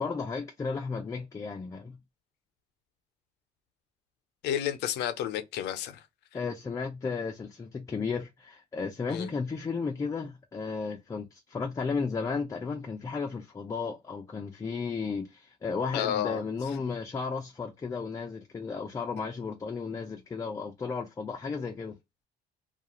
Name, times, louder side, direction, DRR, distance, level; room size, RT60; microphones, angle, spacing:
voice 1, 0.0-2.0 6.3-21.9, left 5 dB, 20° left, 0.4 m, -34 dB
voice 2, 4.4-6.0 9.1-9.3 15.9-16.4, left 10 dB, 85° left, 0.5 m, -31 dB
2.3 x 2.3 x 2.8 m
cardioid pair, 110°, 17 cm